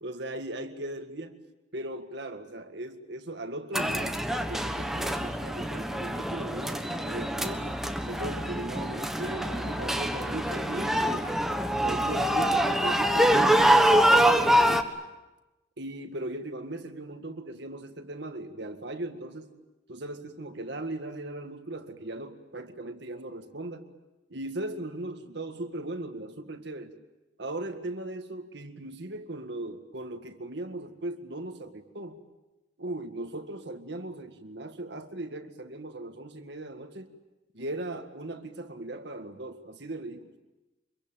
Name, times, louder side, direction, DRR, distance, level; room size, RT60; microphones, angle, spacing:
voice 1, 0.0-1.4 1.7-4.2 4.5-7.7 8.0-11.3 11.8-14.9 15.8-19.5 19.9-23.9 24.3-26.9 27.4-32.2 32.8-37.1 37.5-40.3, right 1 dB, 65° right, 7 dB, 1.9 m, -38 dB
sound 1, 3.7-14.8, equal, ahead, 1.3 m, -25 dB
25.5 x 23.0 x 9.0 m, 1.0 s
head